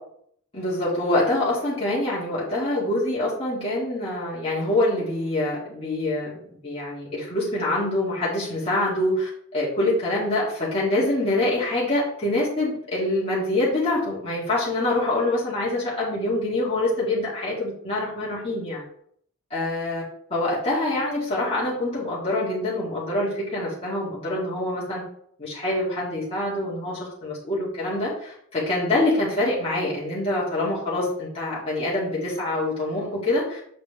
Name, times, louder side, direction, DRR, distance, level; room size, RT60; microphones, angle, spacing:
voice 1, 0.5-6.4 6.6-18.8 19.5-20.0 20.3-25.0 25.4-33.6, left 1 dB, 30° left, -8 dB, 2.5 m, -25 dB
7.1 x 5.0 x 3.5 m, 0.64 s
head